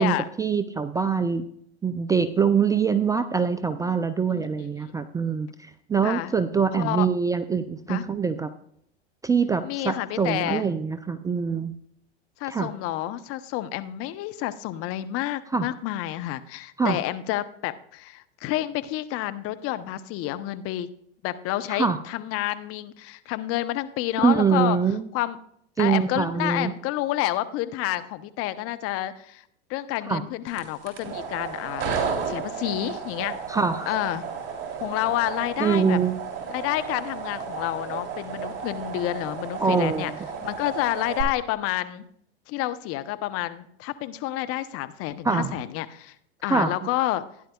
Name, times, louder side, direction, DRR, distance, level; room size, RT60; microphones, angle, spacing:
voice 1, 0.0-1.4 1.8-8.5 9.2-11.7 12.5-12.7 15.5-15.7 16.8-17.0 21.7-22.0 24.2-25.0 25.8-26.7 30.1-30.2 33.5-33.9 35.6-36.2 39.6-40.1 45.2-45.6 46.5-46.7, right 6 dB, 10° right, 10 dB, 0.4 m, -24 dB
voice 2, 6.7-7.1 7.9-8.0 9.6-10.7 12.4-20.9 21.2-24.8 25.1-25.4 25.8-29.4 29.7-33.4 33.9-34.3 34.8-36.0 36.5-40.1 40.4-42.0 42.5-46.1 46.4-47.2, left 14 dB, 45° left, 12 dB, 0.8 m, -29 dB
sound 1, 30.5-41.2, right 6 dB, 50° right, 3.4 m, -33 dB
15.5 x 10.0 x 2.3 m, 0.69 s
hypercardioid pair, 95°, 33 cm